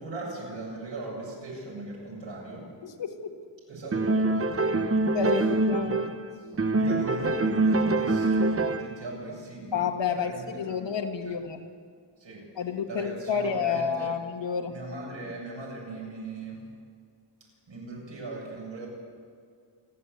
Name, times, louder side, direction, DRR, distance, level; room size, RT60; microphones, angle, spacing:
voice 1, 0.0-2.7 3.7-5.0 5.4-5.5 5.8-6.0 6.7-9.8 10.1-10.8 12.2-12.4 12.9-14.1 14.7-16.6 17.7-18.9, right 2 dB, 75° right, -3 dB, 7.9 m, -39 dB
voice 2, 2.8-3.4 5.1-6.0 9.7-11.6 12.5-14.7, left 6 dB, 70° left, 4 dB, 1.8 m, -30 dB
sound 1, 3.9-6.3 6.6-9.0, right 2 dB, 30° right, 0.8 m, -25 dB
29.0 x 11.5 x 8.4 m, 2.2 s
wide cardioid pair, 170°, 45 cm